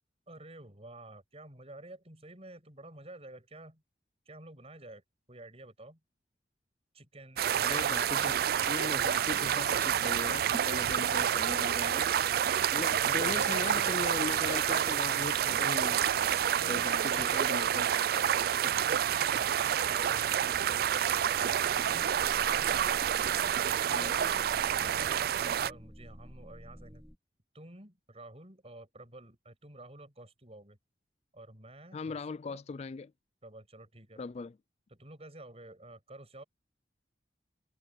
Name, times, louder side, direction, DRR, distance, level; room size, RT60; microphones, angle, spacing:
voice 1, 0.3-3.8 4.3-5.0 5.3-6.0 6.9-7.8 16.5-17.6 18.3-20.9 21.4-22.8 23.6-27.0 27.5-30.8 31.3-32.2 32.5-32.6 33.4-34.2 34.9-36.4, right 1 dB, 35° right, 7.1 m, -51 dB
River sound, 7.4-25.7, right 9 dB, 60° right, 0.3 m, -28 dB
voice 2, 7.6-8.4 8.7-12.1 12.7-16.0 16.7-17.9 23.9-24.1 31.9-33.1 34.2-34.5, left 4 dB, 35° left, 0.4 m, -39 dB
sound 1, 21.3-27.2, equal, ahead, 2.2 m, -51 dB
head